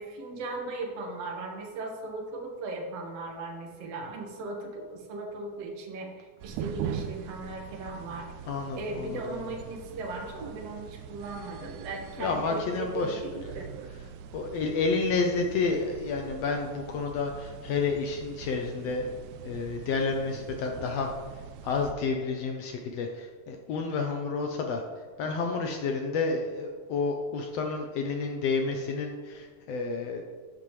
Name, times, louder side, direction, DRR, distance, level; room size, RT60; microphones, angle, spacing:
voice 1, 0.0-8.3 8.8-13.7, right 3 dB, 55° right, 0 dB, 2.4 m, -37 dB
sound 1, 6.4-21.9, right 8 dB, 80° right, 1.9 m, -42 dB
voice 2, 8.5-9.1 9.3-9.4 12.2-13.2 14.3-19.1 19.4-21.1 21.6-24.8 25.2-30.2, left 4 dB, 80° left, 3 dB, 1.4 m, -30 dB
13.5 x 9.1 x 3.2 m, 1.5 s
omnidirectional pair, 3.9 m